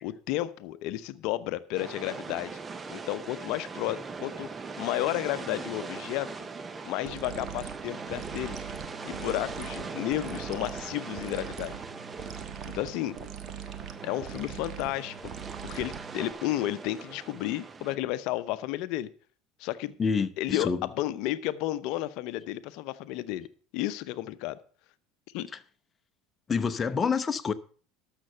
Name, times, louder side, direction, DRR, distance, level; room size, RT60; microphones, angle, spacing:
voice 1, 0.0-2.6 2.9-4.5 4.8-6.3 6.8-8.6 9.0-11.8 12.6-13.2 14.0-15.3 15.6-19.1 19.6-20.0 20.4-20.7 21.0-23.5 23.7-24.6 25.3-25.5, left 15 dB, 65° left, 0.7 m, -32 dB
sound 1, 1.7-18.0, right 4 dB, 25° right, 0.9 m, -41 dB
sound 2, 7.0-16.3, right 9 dB, 50° right, 1.3 m, -42 dB
voice 2, 20.0-20.9 25.5-25.6 26.5-27.5, left 5 dB, 30° left, 0.8 m, -28 dB
12.5 x 6.7 x 5.7 m
hypercardioid pair, 80°, 0 cm